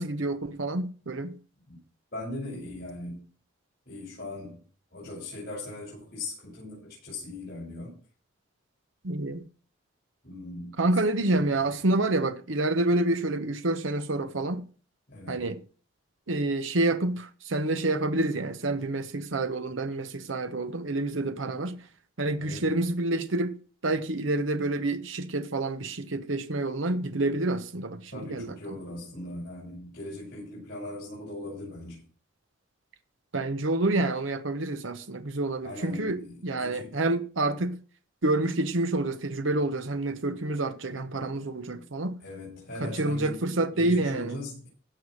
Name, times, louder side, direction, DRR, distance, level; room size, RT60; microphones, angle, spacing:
voice 1, 0.0-1.4 9.0-9.4 10.8-14.6 15.3-15.6 16.3-21.8 22.2-23.6 23.8-28.8 33.3-37.8 38.2-42.2 42.8-44.4, right 2 dB, 75° right, 0.9 m, -28 dB
voice 2, 2.1-3.2 3.9-4.6 4.9-7.9 10.2-10.8 11.3-11.7 15.1-15.5 22.4-22.7 28.1-32.0 35.6-37.0 41.6-41.8 42.2-44.7, left 2 dB, 50° left, 7.1 m, -40 dB
16.5 x 5.7 x 6.5 m
head